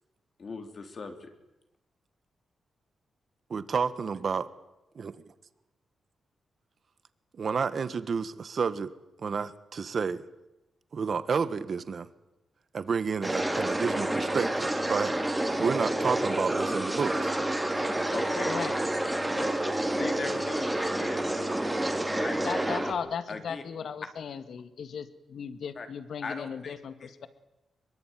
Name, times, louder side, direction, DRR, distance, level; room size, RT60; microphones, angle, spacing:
voice 1, 0.4-1.3 18.1-18.6 19.4-22.4 23.3-23.6 25.8-25.9 26.2-26.7 27.0-27.1, left 4 dB, 40° left, 6 dB, 3.7 m, -39 dB
voice 2, 3.5-4.5 4.9-5.3 7.3-8.9 9.2-10.2 10.9-12.1 12.7-15.1 15.6-17.3, right 5 dB, 45° right, 14 dB, 1.5 m, -30 dB
sound 1, 13.2-22.9, right 1 dB, 10° right, 3.1 m, -29 dB
voice 3, 18.4-18.8 22.4-27.3, left 7 dB, 65° left, 12 dB, 1.8 m, -37 dB
24.5 x 23.0 x 9.2 m, 0.94 s
wide cardioid pair, 135°, 0 cm